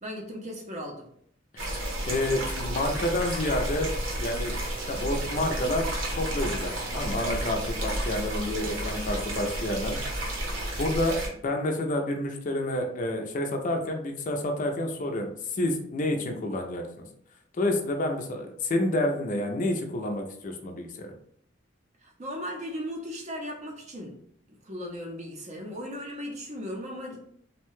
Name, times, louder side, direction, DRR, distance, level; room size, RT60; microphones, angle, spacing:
voice 1, 0.0-1.1 22.0-24.2 24.5-27.2, equal, 35° right, 0 dB, 0.5 m, -37 dB
sound 1, 1.6-11.3, right 1 dB, 85° right, 0.9 m, -32 dB
voice 2, 2.1-3.9 4.2-4.5 4.9-5.9 6.1-10.0 10.8-17.1 17.5-21.1, left 1 dB, 40° left, 3 dB, 0.4 m, -29 dB
2.7 x 2.1 x 3.0 m, 0.64 s
head